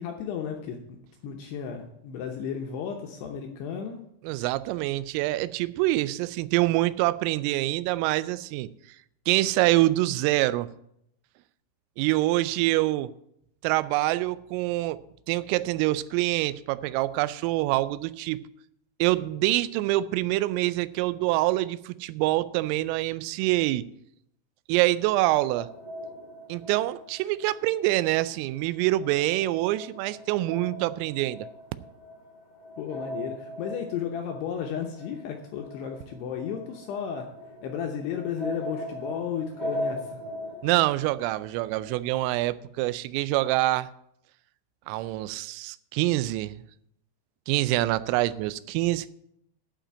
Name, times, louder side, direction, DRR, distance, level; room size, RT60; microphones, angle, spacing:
voice 1, 0.0-4.0 32.8-37.3 37.6-40.2, left 7 dB, 75° left, 2 dB, 2.5 m, -34 dB
voice 2, 4.2-8.7 9.3-10.7 12.0-13.1 13.6-15.0 15.3-18.4 19.0-23.8 24.7-25.7 26.5-31.5 40.6-43.9 44.9-46.6 47.5-49.1, right 17 dB, 90° right, 16 dB, 3.2 m, -25 dB
sound 1, 25.5-28.1 28.4-42.2, equal, 50° left, 1.0 m, -40 dB
11.5 x 5.0 x 8.6 m, 0.76 s
omnidirectional pair, 5.8 m